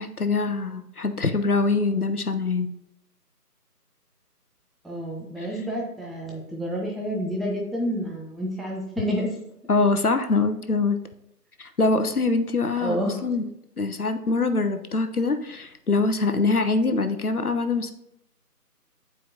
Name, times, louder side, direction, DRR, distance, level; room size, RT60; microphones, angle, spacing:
voice 1, 0.0-2.7 5.4-5.5 9.7-11.0 11.6-13.0 13.2-13.4 13.8-17.9, left 3 dB, 65° left, 9 dB, 0.7 m, -24 dB
voice 2, 4.8-9.3 12.8-13.2, equal, ahead, -2 dB, 0.6 m, -29 dB
8.4 x 4.5 x 2.7 m, 0.80 s
figure-of-eight pair, 180°, 48 cm